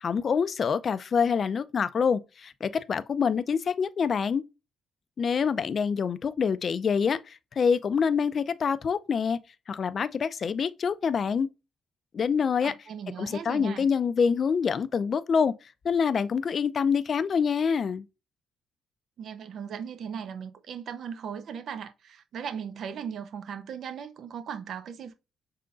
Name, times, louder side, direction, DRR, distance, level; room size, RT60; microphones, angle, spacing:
voice 1, 0.0-4.4 5.2-9.4 9.7-11.5 12.1-12.7 13.2-15.5 15.8-18.0, left 6 dB, 50° left, 0.4 m, -26 dB
voice 2, 12.6-13.9 19.2-25.1, right 7 dB, 65° right, 0.7 m, -38 dB
5.6 x 3.8 x 2.5 m
cardioid pair, 90°, 0 cm